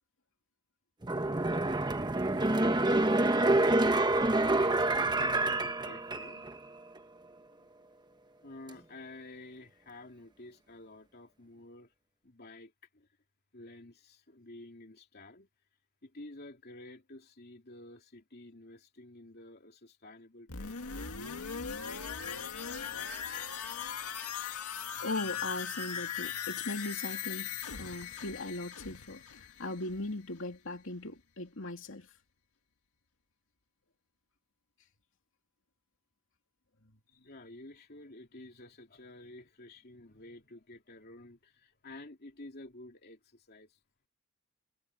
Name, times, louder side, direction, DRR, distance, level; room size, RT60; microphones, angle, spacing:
sound 1, 1.0-6.6 7.0-7.1, right 2 dB, 20° right, 1.1 m, -27 dB
voice 1, 3.6-4.2 4.5-6.5 8.4-11.9 12.2-13.1 13.5-15.5 16.0-21.1 37.1-43.7, left 2 dB, 45° left, 3.0 m, -51 dB
sound 2, 20.5-30.2 30.5-30.6, left 7 dB, 90° left, 1.9 m, -39 dB
voice 2, 25.0-32.1, left 2 dB, 60° left, 2.9 m, -39 dB
head